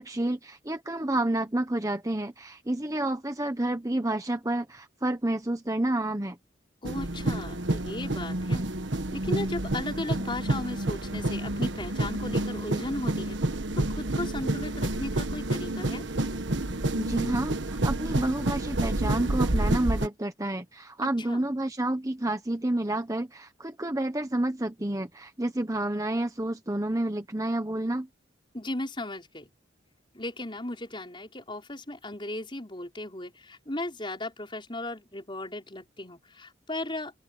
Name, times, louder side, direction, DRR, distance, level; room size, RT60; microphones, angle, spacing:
voice 1, 0.0-6.4 17.0-28.1, right 1 dB, 15° right, 1.1 m, -29 dB
voice 2, 6.8-8.7 9.1-13.4 13.7-16.0 21.3-21.4 28.5-29.5 30.1-37.1, left 1 dB, 25° left, 5.6 m, -36 dB
sound 1, 6.8-20.1, right 1 dB, 70° right, 1.4 m, -29 dB
open air
head